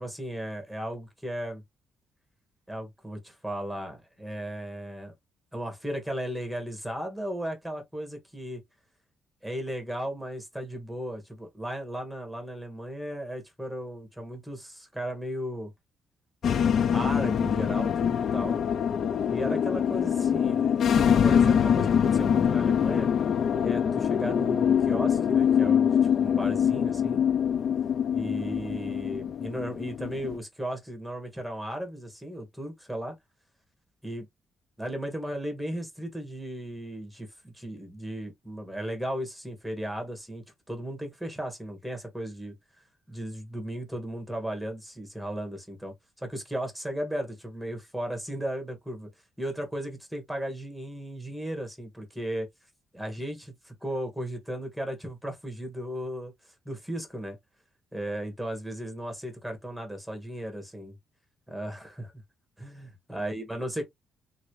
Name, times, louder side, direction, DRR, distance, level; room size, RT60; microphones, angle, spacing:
voice 1, 0.0-1.6 2.7-5.1 5.5-8.6 9.4-15.7 16.5-18.6 19.3-23.1 23.6-27.2 28.1-33.1 34.0-34.3 34.8-42.5 43.1-49.1 49.4-52.5 52.9-56.3 56.6-57.4 57.9-61.0 61.5-62.1 62.6-63.8, equal, ahead, 1.4 m, -35 dB
sound 1, 16.4-30.4, left 8 dB, 60° left, 0.3 m, -24 dB
3.1 x 2.6 x 3.0 m
cardioid pair, 90°, 0 cm